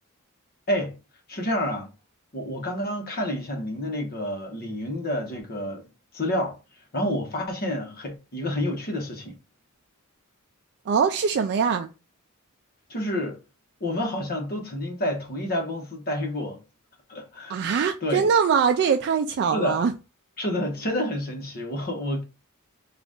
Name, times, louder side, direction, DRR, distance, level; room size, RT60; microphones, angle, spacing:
voice 1, 1.3-1.9 2.3-5.8 6.1-6.6 6.9-9.4 12.9-13.4 13.8-16.6 17.1-17.6 18.0-18.3 19.5-19.8 20.4-22.2, left 1 dB, 45° left, 1.1 m, -29 dB
voice 2, 10.9-11.9 17.5-19.9, right 6 dB, 50° right, 0.3 m, -22 dB
3.9 x 2.5 x 3.6 m
head